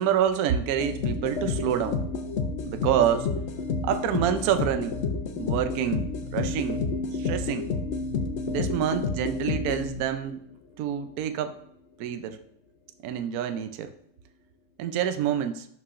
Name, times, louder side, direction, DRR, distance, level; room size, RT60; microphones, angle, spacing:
voice 1, 0.0-2.0 2.6-3.3 3.8-5.0 5.4-6.8 7.1-7.7 8.5-10.4 10.8-11.5 12.0-12.4 13.0-13.9 14.8-15.7, right 9 dB, 70° right, 9 dB, 1.0 m, -27 dB
sound 1, 0.8-10.3, left 4 dB, 70° left, 0.6 m, -30 dB
11.0 x 4.8 x 2.5 m, 0.69 s
omnidirectional pair, 1.9 m